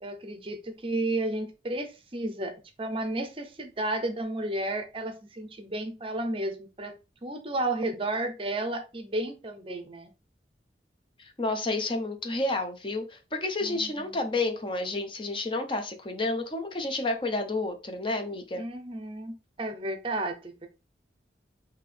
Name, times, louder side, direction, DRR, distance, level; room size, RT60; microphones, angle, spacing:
voice 1, 0.0-6.9 7.2-10.1 13.6-14.2 18.6-20.7, right 2 dB, 30° right, 0.6 m, -32 dB
voice 2, 11.2-18.6, left 2 dB, 30° left, 0.6 m, -30 dB
5.8 x 2.8 x 3.3 m
head